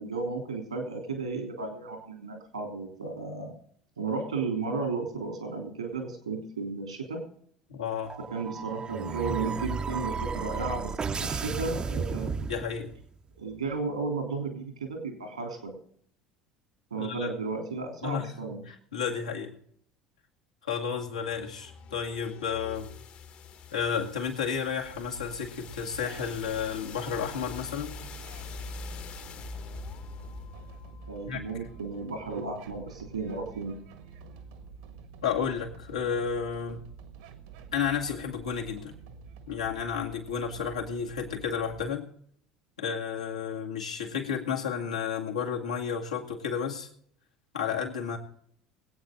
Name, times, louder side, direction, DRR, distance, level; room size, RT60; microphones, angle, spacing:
voice 1, 0.0-3.5 4.0-7.2 8.3-12.3 13.4-15.7 16.9-18.6 31.1-33.8, right 4 dB, 85° right, 3 dB, 3.1 m, -34 dB
voice 2, 7.7-8.1 12.5-12.9 17.0-17.4 18.0-18.3 18.7-19.5 20.6-22.9 23.7-28.0 31.3-31.4 35.2-36.8 37.7-39.0 39.5-42.1 42.8-46.9 47.5-48.2, left 7 dB, 80° left, -1 dB, 2.1 m, -32 dB
sound 1, 8.1-13.1, right 5 dB, 25° right, 0.8 m, -33 dB
sound 2, 21.0-32.9, left 5 dB, 45° left, 1.4 m, -45 dB
sound 3, 24.8-41.9, right 6 dB, 65° right, 1.6 m, -48 dB
22.0 x 8.9 x 3.8 m, 0.63 s
figure-of-eight pair, 65°, 3 cm